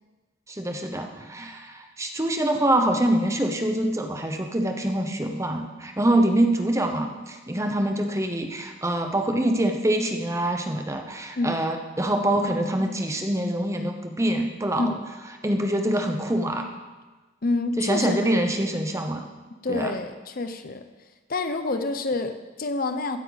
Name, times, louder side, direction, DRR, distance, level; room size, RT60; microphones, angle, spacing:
voice 1, 0.5-14.9 15.4-16.7 17.8-19.3 19.7-19.9, right 1 dB, 15° right, 4 dB, 0.9 m, -25 dB
voice 2, 17.4-18.3 18.6-18.7 19.6-20.9 21.3-23.2, left 3 dB, 45° left, 8 dB, 0.7 m, -28 dB
15.0 x 9.6 x 4.1 m, 1.3 s
head